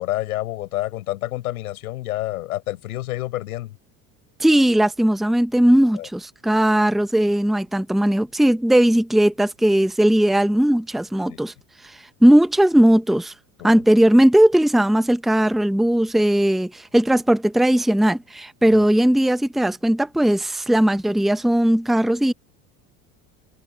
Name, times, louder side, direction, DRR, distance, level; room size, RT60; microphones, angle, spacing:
voice 1, 0.0-3.7 5.9-6.1 11.3-11.4 13.6-13.8 18.7-18.9, left 16 dB, 85° left, 4.6 m, -29 dB
voice 2, 4.4-11.5 12.2-13.3 13.6-22.3, right 1 dB, ahead, 1.0 m, -18 dB
hypercardioid pair, 85°, 42 cm